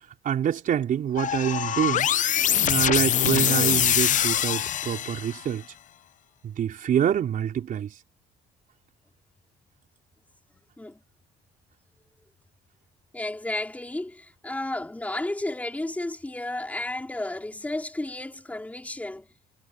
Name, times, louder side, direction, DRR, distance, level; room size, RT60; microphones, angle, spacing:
voice 1, 0.2-2.1 2.7-5.6 6.4-7.9, right 9 dB, 55° right, 4.7 m, -26 dB
sound 1, 1.2-5.5, left 10 dB, 50° left, 0.7 m, -23 dB
voice 2, 13.1-19.3, left 1 dB, 10° left, 3.8 m, -32 dB
cardioid pair, 110°, 17 cm